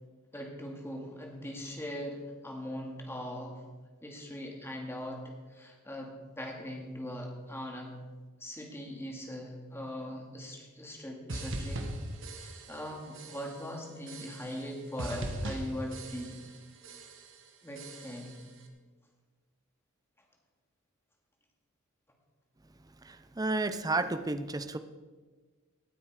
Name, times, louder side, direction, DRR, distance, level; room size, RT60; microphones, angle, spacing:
voice 1, 0.3-3.6 4.0-8.0 8.4-11.9 12.4-16.4 17.6-18.4, equal, 10° left, 1 dB, 2.2 m, -40 dB
sound 1, 11.3-12.9 13.1-13.7 14.1-14.7 15.0-16.6 16.8-17.4 17.8-18.4, right 1 dB, 60° right, 1.6 m, -40 dB
voice 2, 23.0-24.8, right 2 dB, 15° right, 11 dB, 0.6 m, -32 dB
18.0 x 9.2 x 4.9 m, 1.4 s
head